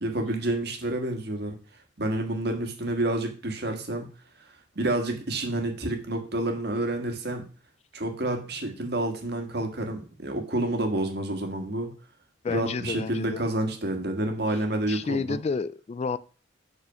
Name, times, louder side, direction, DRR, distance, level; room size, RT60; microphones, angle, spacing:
voice 1, 0.0-1.6 2.0-4.1 4.8-7.4 7.9-11.9 12.5-15.4, right 1 dB, 60° right, 4 dB, 1.7 m, -29 dB
voice 2, 12.4-13.4 14.5-14.6 14.9-16.2, left 4 dB, 35° left, 16 dB, 0.3 m, -30 dB
6.3 x 5.5 x 5.7 m, 0.38 s
head